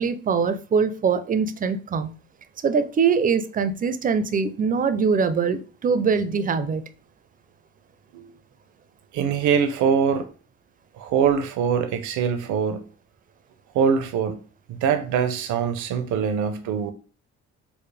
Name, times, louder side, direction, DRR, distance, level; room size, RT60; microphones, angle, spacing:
voice 1, 0.0-2.2 2.6-6.8, right 5 dB, 30° right, 0.4 m, -23 dB
voice 2, 9.1-10.3 11.0-12.8 13.7-14.4 14.7-16.9, right 7 dB, 80° right, 0.6 m, -23 dB
4.7 x 2.1 x 3.2 m
cardioid pair, 90°, 30 cm